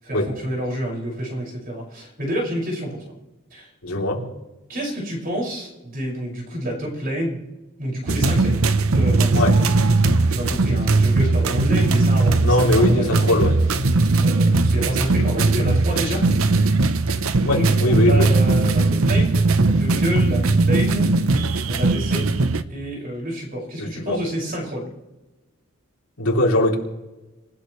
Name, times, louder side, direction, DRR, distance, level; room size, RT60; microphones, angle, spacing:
voice 1, 0.0-3.0 3.5-3.7 4.7-7.4 7.8-8.7 8.9-9.5 10.3-13.4 14.2-16.3 17.5-21.1 21.7-22.3 22.7-24.9, equal, 40° right, -1 dB, 6.0 m, -28 dB
voice 2, 3.8-4.3 9.3-9.5 12.4-13.5 17.4-18.3 23.8-24.2 26.2-26.7, left 1 dB, 80° left, 0 dB, 3.3 m, -20 dB
sound 1, 8.1-22.6, right 3 dB, 75° right, 0.9 m, -19 dB
27.0 x 16.0 x 3.3 m, 1.0 s
head